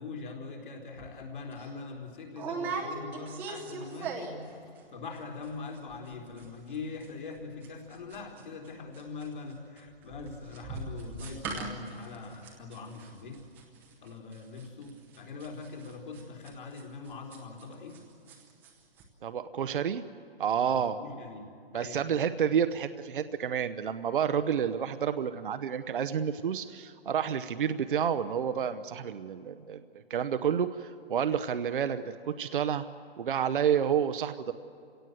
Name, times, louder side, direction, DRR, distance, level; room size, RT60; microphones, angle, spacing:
voice 1, 0.0-13.4 14.0-18.0 20.7-22.1, left 4 dB, 50° left, 1 dB, 3.9 m, -42 dB
sound 1, 1.0-1.1 1.5-1.7 2.3-4.5 4.8-5.2 5.4-5.5 5.7-6.1 6.4-8.7 8.9-18.0 18.3-18.7 19.0-19.1, right 4 dB, 5° right, 0.8 m, -40 dB
voice 2, 19.2-20.0 20.4-21.0 21.7-29.8 30.1-32.8 33.2-34.5, right 8 dB, 55° right, 10 dB, 0.8 m, -29 dB
29.5 x 17.0 x 7.9 m, 2.4 s
hypercardioid pair, 170°, 31 cm